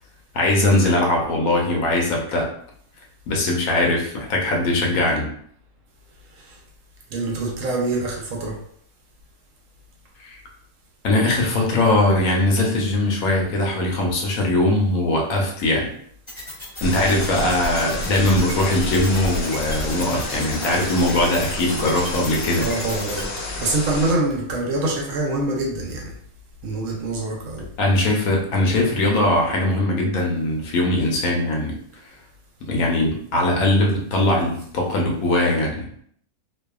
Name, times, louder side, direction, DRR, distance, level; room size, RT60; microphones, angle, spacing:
voice 1, 0.3-2.5 3.3-5.3 10.2-10.4 11.0-15.9 16.8-22.7 27.8-31.8 32.7-35.9, left 1 dB, 80° left, 1.1 m, -20 dB
voice 2, 7.1-8.6 22.5-26.1 26.6-27.7, right 2 dB, 70° right, 0.9 m, -25 dB
sound 1, 16.3-23.2, equal, 30° left, 0.6 m, -35 dB
sound 2, 16.8-24.1, left 2 dB, 60° left, 0.7 m, -30 dB
2.6 x 2.2 x 2.3 m
omnidirectional pair, 1.5 m